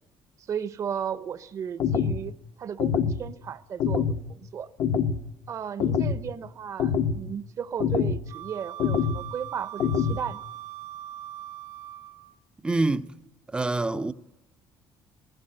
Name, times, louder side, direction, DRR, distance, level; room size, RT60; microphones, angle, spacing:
voice 1, 0.4-2.3 2.6-4.7 5.5-10.5, right 8 dB, 40° right, 0.9 m, -35 dB
sound 1, 1.8-2.2 2.8-3.2 3.8-4.2 4.8-5.2 5.8-6.2 6.8-7.2 7.8-8.2 8.8-9.2 9.8-10.2, left 7 dB, 55° left, 1.0 m, -25 dB
Wind instrument woodwind instrument, 8.3-12.3, right 13 dB, 90° right, 1.3 m, -41 dB
voice 2, 12.6-13.1 13.5-14.1, right 2 dB, 10° right, 0.6 m, -25 dB
20.5 x 15.5 x 9.0 m
cardioid pair, 150°, 8 cm